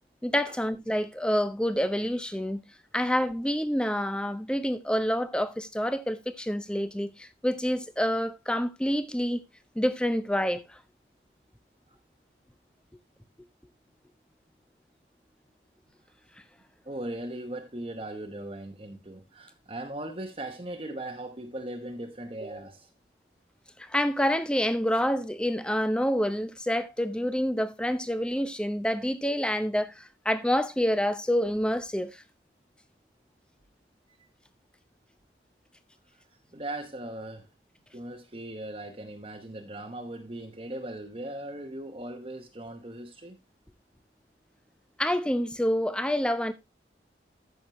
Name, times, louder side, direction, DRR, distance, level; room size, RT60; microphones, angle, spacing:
voice 1, 0.2-2.6 2.9-9.4 9.8-10.8 23.8-32.2 45.0-46.5, equal, 5° left, 0.7 m, -27 dB
voice 2, 16.8-22.9 36.5-37.5 37.9-43.4, right 1 dB, 30° right, 1.0 m, -39 dB
14.0 x 6.3 x 3.0 m
head